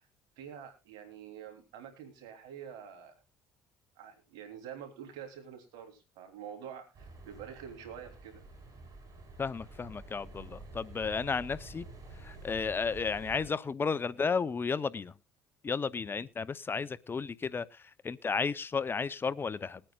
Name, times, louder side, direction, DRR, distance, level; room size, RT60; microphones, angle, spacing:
voice 1, 0.4-3.2 4.0-8.4, right 8 dB, 80° right, 5 dB, 3.2 m, -47 dB
sound 1, 6.9-13.5, right 2 dB, 50° right, 6.2 m, -49 dB
voice 2, 9.4-11.9 12.2-15.1 15.6-19.8, left 5 dB, 30° left, 19 dB, 0.7 m, -33 dB
21.0 x 8.9 x 2.4 m, 0.25 s
supercardioid pair, 75°, 8 cm